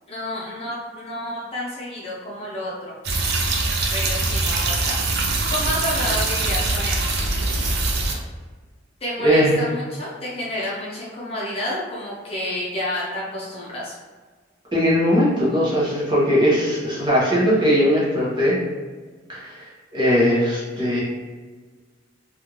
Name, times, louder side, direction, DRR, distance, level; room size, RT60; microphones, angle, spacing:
voice 1, 0.1-2.9 3.9-5.0 5.5-7.1 9.0-14.0, left 1 dB, 30° left, -6 dB, 0.7 m, -30 dB
sound 1, 3.0-8.1, right 3 dB, 60° right, 0.5 m, -23 dB
voice 2, 9.2-9.6 14.7-18.6 19.3-19.7 19.9-21.0, equal, 25° right, -7 dB, 1.0 m, -19 dB
3.3 x 2.4 x 2.9 m, 1.5 s
head